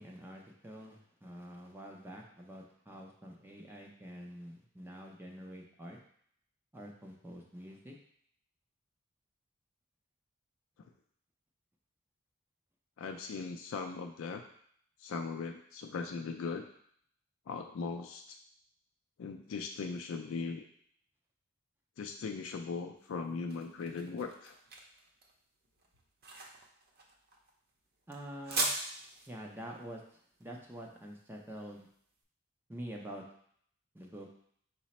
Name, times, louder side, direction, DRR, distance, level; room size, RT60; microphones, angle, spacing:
voice 1, 0.0-6.0 6.7-8.0 28.1-28.7 29.3-30.0 30.4-31.9 32.7-33.3 33.9-34.3, equal, 10° right, 0 dB, 0.4 m, -47 dB
voice 2, 13.0-14.4 15.0-16.6 17.5-18.4 19.2-20.6 22.0-24.6, left 4 dB, 65° left, 4 dB, 0.3 m, -39 dB
sound 1, 23.0-32.0, right 2 dB, 50° right, 0.7 m, -41 dB
4.8 x 2.0 x 4.1 m, 0.65 s
head